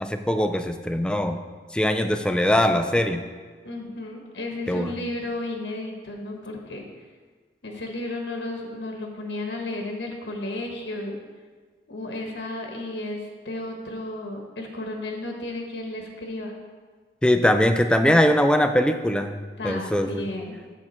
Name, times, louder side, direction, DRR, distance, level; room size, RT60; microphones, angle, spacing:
voice 1, 0.0-1.4 1.7-3.2 4.7-5.0 17.2-19.4 19.6-20.3, left 1 dB, 5° left, 7 dB, 0.4 m, -21 dB
voice 2, 3.6-6.8 7.6-11.2 11.9-16.5 19.6-20.6, left 2 dB, 75° left, 1 dB, 1.1 m, -33 dB
7.3 x 6.6 x 4.4 m, 1.5 s
head